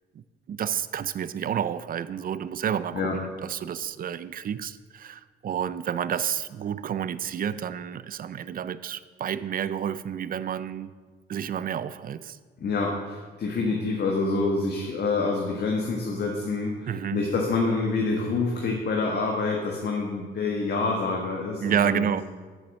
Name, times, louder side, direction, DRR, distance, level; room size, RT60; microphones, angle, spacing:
voice 1, 0.5-10.9 11.3-12.4 16.9-17.2 21.6-22.2, right 9 dB, 45° right, 15 dB, 0.5 m, -30 dB
voice 2, 12.6-22.2, left 3 dB, 55° left, 0 dB, 1.4 m, -27 dB
7.7 x 7.2 x 6.4 m, 1.5 s
cardioid pair, 90°, 20 cm